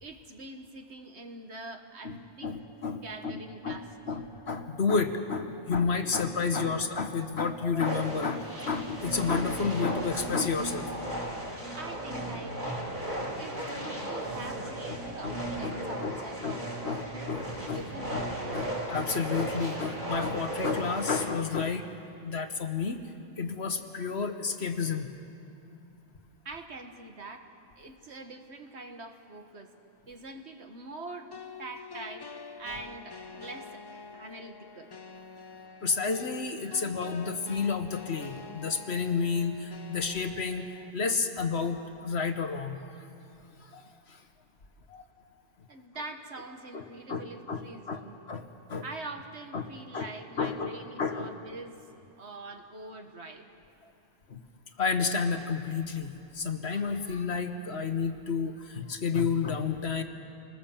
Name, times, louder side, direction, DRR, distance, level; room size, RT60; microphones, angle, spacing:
voice 1, 0.0-2.6 2.9-3.9 5.9-6.8 11.7-12.8 13.4-17.1 17.7-18.3 26.5-29.7 30.1-34.9 36.6-36.9 45.7-48.2 48.8-51.8 52.2-53.5, right 2 dB, 55° right, 5 dB, 1.7 m, -44 dB
voice 2, 2.0-3.8 4.1-10.9 15.2-15.4 15.6-15.7 16.0-16.2 16.4-16.6 16.8-17.0 17.3-17.4 17.7-17.8 18.1-18.2 18.5-21.9 22.2-23.0 23.4-25.1 35.8-42.8 43.6-44.2 44.9-45.0 46.7-48.0 48.3-48.4 48.7-48.8 49.5-49.7 49.9-50.1 50.4-51.3 54.3-54.4 54.8-60.0, left 5 dB, 55° left, 7 dB, 1.4 m, -31 dB
sound 1, 7.8-21.3, right 1 dB, 35° right, 4.9 m, -35 dB
sound 2, 31.3-40.9, left 5 dB, 30° left, 0.5 m, -46 dB
26.5 x 20.0 x 7.3 m, 2.6 s
omnidirectional pair, 1.4 m